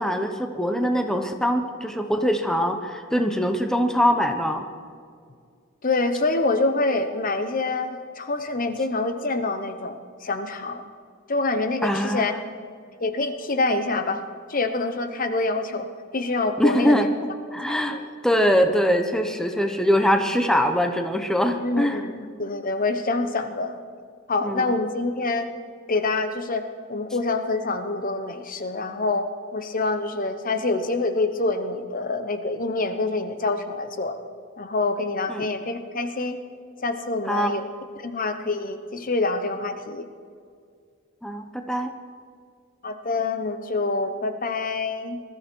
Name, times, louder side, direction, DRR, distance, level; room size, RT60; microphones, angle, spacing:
voice 1, 0.0-4.7 11.8-12.4 16.6-17.1 17.5-18.0 18.2-22.0 24.4-24.7 35.3-35.5 37.3-37.5 41.2-41.9, equal, 5° left, 5 dB, 0.9 m, -23 dB
voice 2, 5.8-10.8 11.3-12.3 13.0-14.2 14.5-15.9 16.1-17.1 17.7-18.0 21.6-23.8 24.3-25.5 25.9-34.1 34.6-36.4 36.8-37.7 38.0-40.1 42.8-45.2, left 3 dB, 45° left, 8 dB, 1.0 m, -26 dB
21.0 x 13.5 x 4.6 m, 2.2 s
head